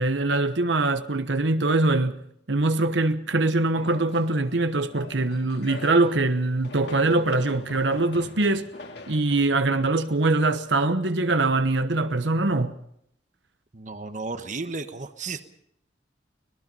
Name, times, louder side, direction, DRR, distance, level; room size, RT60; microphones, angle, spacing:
voice 1, 0.0-2.2 2.5-8.7 9.1-12.8, right 2 dB, 75° right, 1.2 m, -23 dB
sound 1, 3.8-10.8, left 2 dB, 60° left, 2.6 m, -44 dB
voice 2, 13.7-15.4, right 3 dB, 45° right, 1.1 m, -33 dB
24.5 x 19.0 x 5.5 m
head